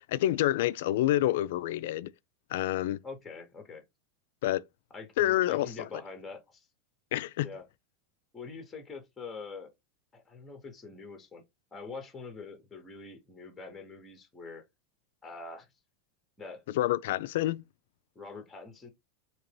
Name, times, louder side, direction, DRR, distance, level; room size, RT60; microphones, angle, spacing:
voice 1, 0.0-2.1 2.5-3.0 4.4-4.6 5.2-5.7 7.1-7.5 16.8-17.6, left 14 dB, 60° left, 0.3 m, -28 dB
voice 2, 3.0-3.8 4.9-6.7 7.4-7.6 8.3-9.7 10.1-11.4 11.7-14.6 15.2-15.7 16.4-16.6 18.1-18.9, left 4 dB, 10° left, 0.7 m, -44 dB
3.9 x 2.9 x 3.2 m
supercardioid pair, 175°, 0 cm